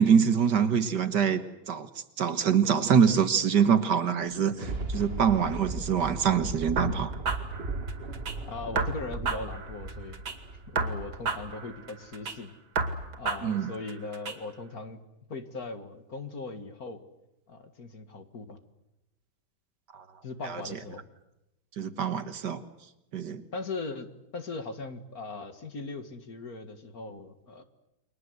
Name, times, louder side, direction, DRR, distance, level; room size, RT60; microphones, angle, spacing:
voice 1, 0.0-1.4 1.7-1.9 2.2-7.1 13.4-13.7 19.9-20.0 20.4-20.6 21.8-22.6 23.1-23.4, right 7 dB, 60° right, 10 dB, 1.9 m, -24 dB
Thunder, 4.3-11.7 12.2-12.3, right 3 dB, 30° right, 1.9 m, -37 dB
sound 1, 6.8-8.4 8.8-10.4 10.8-12.4 12.8-14.4, right 4 dB, 80° right, 3.1 m, -32 dB
voice 2, 8.5-10.2 10.7-12.5 13.2-15.0 15.3-17.0 17.5-18.6 20.2-21.1 23.5-27.6, left 3 dB, 50° left, 8 dB, 2.3 m, -39 dB
30.0 x 24.0 x 8.0 m, 0.88 s
omnidirectional pair, 2.1 m